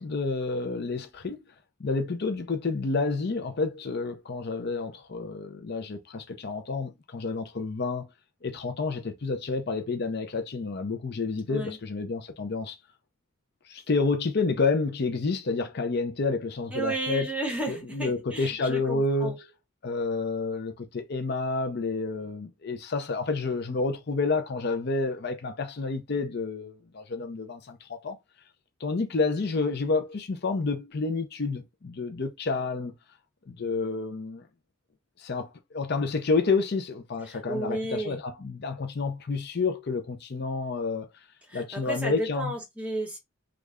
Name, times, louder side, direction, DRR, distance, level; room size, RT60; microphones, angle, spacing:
voice 1, 0.0-1.4 1.8-8.1 8.4-12.8 13.7-17.3 17.7-19.5 19.8-28.2 28.8-32.9 33.5-34.4 35.2-41.1 41.5-42.5, left 3 dB, 50° left, 0.5 m, -29 dB
voice 2, 16.7-19.3 37.3-38.2 41.5-43.2, right 2 dB, 5° right, 1.1 m, -33 dB
3.1 x 2.4 x 3.5 m
head